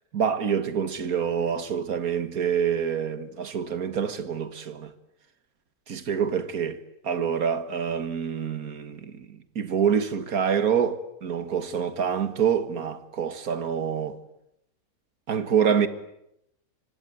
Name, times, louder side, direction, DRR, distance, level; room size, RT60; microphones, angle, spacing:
voice 1, 0.1-4.9 5.9-14.2 15.3-15.9, right 7 dB, 75° right, 2.1 m, -26 dB
25.5 x 25.0 x 9.2 m
omnidirectional pair, 1.6 m